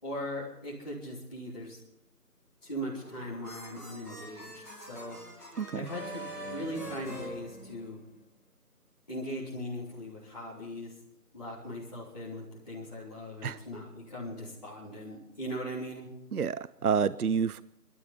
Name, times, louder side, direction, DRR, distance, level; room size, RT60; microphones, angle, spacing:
voice 1, 0.0-1.8 2.6-5.2 5.7-8.0 9.1-10.9 11.3-16.1, equal, 25° left, -11 dB, 3.5 m, -39 dB
sound 1, 2.9-8.2, equal, 10° right, 3.6 m, -44 dB
voice 2, 5.6-5.9 13.4-13.6 16.3-17.6, right 6 dB, 70° right, 18 dB, 0.5 m, -29 dB
23.0 x 12.5 x 4.2 m, 0.82 s
figure-of-eight pair, 170°, 47 cm